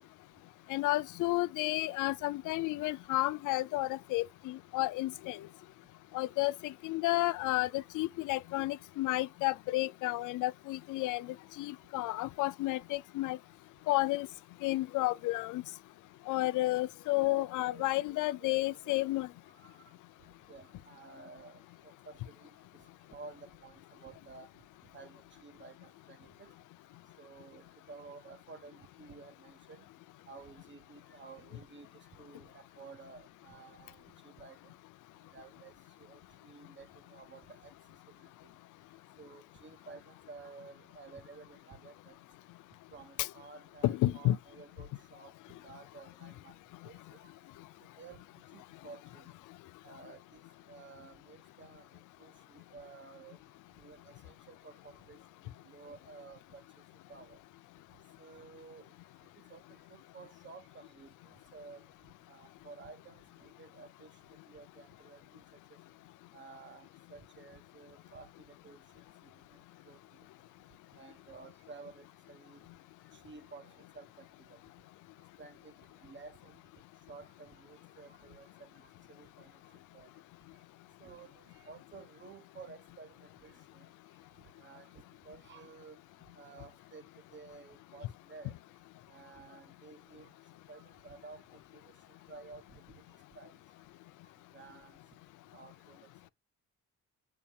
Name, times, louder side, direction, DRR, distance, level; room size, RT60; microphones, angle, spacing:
voice 1, 0.7-5.4 6.1-13.4 13.9-14.3 14.6-15.6 16.3-19.3 43.2-43.3 43.8-44.4, left 18 dB, 90° left, 0.5 m, -31 dB
voice 2, 17.1-19.0 19.6-19.7 20.5-21.6 22.0-22.5 23.1-24.5 24.9-26.5 27.2-29.8 30.3-31.9 32.2-34.0 34.2-34.6 35.3-35.7 36.0-37.7 39.2-42.2 42.9-45.3 45.6-46.5 46.8-47.2 48.0-48.2 48.5-49.3 49.8-50.2 50.7-51.9 52.2-53.4 53.8-55.2 55.6-56.6 57.1-57.4 58.2-58.9 59.4-61.8 62.3-64.1 64.5-65.4 66.3-68.3 68.6-68.8 69.8-70.0 71.0-72.6 73.2-74.6 75.4-75.7 76.0-76.6 77.1-78.7 79.1-79.5 79.9-80.1 81.0-83.1 83.4-83.8 84.6-84.9 85.2-86.0 86.3-87.0 87.3-88.5 89.1-90.3 90.7-91.4 91.7-91.8 92.3-92.8 93.3-93.5 94.5-94.9 95.5-96.3, right 4 dB, 40° right, 1.4 m, -52 dB
7.0 x 5.6 x 2.5 m
cardioid pair, 90°, 30 cm